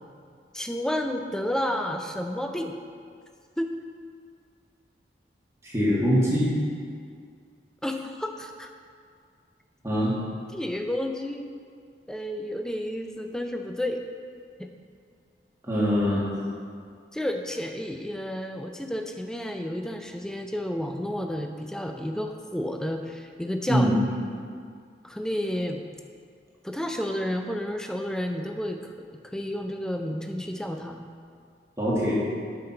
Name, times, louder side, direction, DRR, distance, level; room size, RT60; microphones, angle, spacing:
voice 1, 0.5-2.8 3.6-3.8 7.8-8.7 10.5-11.5 12.1-14.0 14.6-14.7 17.1-23.9 25.0-25.8 26.6-28.8 29.2-31.0, left 1 dB, 5° left, 4 dB, 0.4 m, -31 dB
voice 2, 5.6-6.5 9.8-10.1 15.6-16.3 23.7-24.0 31.8-32.2, equal, 15° right, -8 dB, 1.8 m, -23 dB
8.8 x 5.9 x 4.4 m, 2.2 s
head